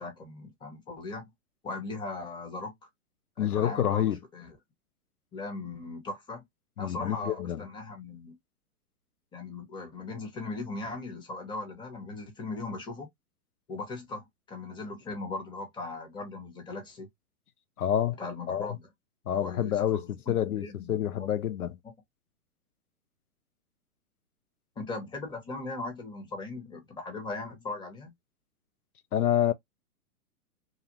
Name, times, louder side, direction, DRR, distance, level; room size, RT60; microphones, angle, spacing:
voice 1, 0.0-1.3 1.6-2.9 3.4-4.6 5.3-6.4 6.8-8.4 9.3-13.1 13.7-17.1 18.2-18.9 19.3-21.3 21.8-21.9 24.8-28.1, left 3 dB, 10° left, 0.8 m, -39 dB
voice 2, 3.4-4.2 6.8-7.6 17.8-18.2 18.5-18.8 19.3-21.7 29.1-29.5, left 10 dB, 85° left, 0.6 m, -28 dB
2.5 x 2.1 x 2.8 m
hypercardioid pair, 120°, 43 cm